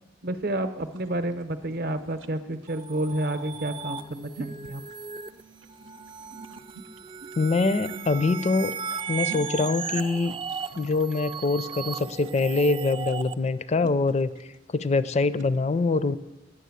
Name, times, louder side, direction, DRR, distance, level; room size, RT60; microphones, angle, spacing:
voice 1, 0.2-4.8, right 1 dB, 55° right, 10 dB, 0.7 m, -30 dB
sound 1, 0.8-15.6, right 3 dB, 85° right, 0.7 m, -48 dB
sound 2, 2.7-13.3, right 6 dB, 30° right, 0.4 m, -36 dB
voice 2, 7.4-8.7 9.1-10.3 10.8-16.2, left 3 dB, 35° left, 14 dB, 0.4 m, -24 dB
10.0 x 6.9 x 8.2 m, 1.0 s
head